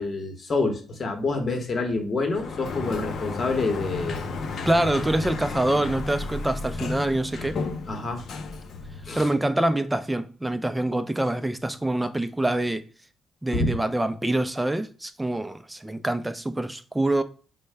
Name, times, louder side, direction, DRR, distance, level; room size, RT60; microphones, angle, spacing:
voice 1, 0.0-4.2 7.9-8.2 9.0-9.3 13.5-13.7, left 3 dB, 40° left, 0.8 m, -27 dB
Sliding door, 2.2-9.4, left 3 dB, 55° left, 0.5 m, -33 dB
voice 2, 4.7-7.6 9.1-12.8 13.4-17.2, right 1 dB, 10° right, 0.4 m, -25 dB
4.5 x 2.1 x 3.2 m
cardioid pair, 110°, 0 cm